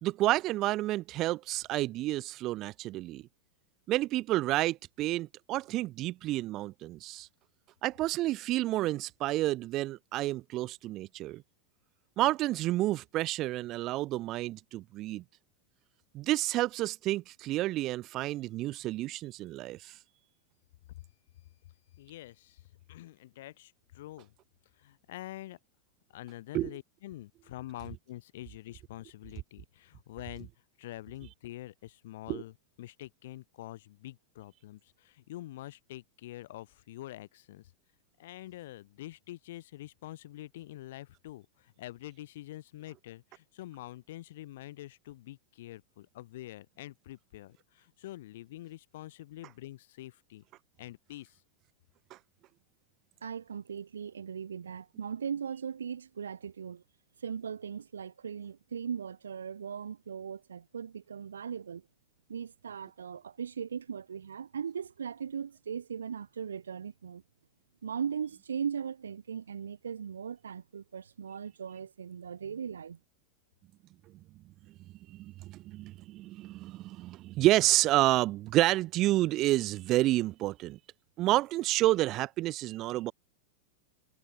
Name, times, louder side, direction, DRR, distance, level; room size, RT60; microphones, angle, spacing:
voice 1, 0.0-3.2 3.9-7.3 7.8-11.4 12.2-15.2 16.1-19.9 26.5-26.7 32.3-32.4 52.1-52.2 75.1-80.8 81.2-83.1, right 16 dB, 35° right, 0.5 m, -29 dB
voice 2, 22.0-24.3 24.7-25.6 26.1-30.5 30.8-37.7 38.2-50.4 50.8-51.4, left 15 dB, 55° left, 5.6 m, -46 dB
voice 3, 53.2-56.8 57.2-61.9 62.3-67.2 67.8-73.0, right 7 dB, 70° right, 2.3 m, -38 dB
figure-of-eight pair, 90°, 0 cm